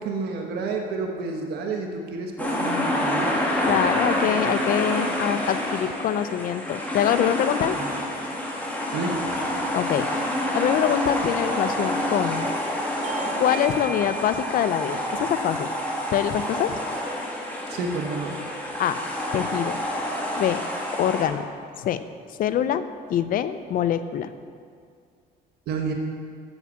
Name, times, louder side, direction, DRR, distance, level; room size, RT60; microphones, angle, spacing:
voice 1, 0.0-3.3 3.7-3.8 7.8-7.9 8.9-9.2 17.7-18.4 25.7-25.9, right 4 dB, 75° right, 2 dB, 1.2 m, -30 dB
sound 1, 2.4-21.2, left 1 dB, 10° left, 2.1 m, -28 dB
voice 2, 3.7-7.8 9.7-10.1 10.5-12.5 13.4-15.7 16.1-16.8 18.8-19.0 19.3-19.8 20.4-20.6 21.0-21.5 21.8-22.0 22.4-22.8 23.1-24.3, left 10 dB, 55° left, 12 dB, 0.6 m, -24 dB
Bell / Doorbell, 13.0-18.2, right 7 dB, 45° right, 0.9 m, -40 dB
8.5 x 8.0 x 7.2 m, 2.2 s
cardioid pair, 110°, 17 cm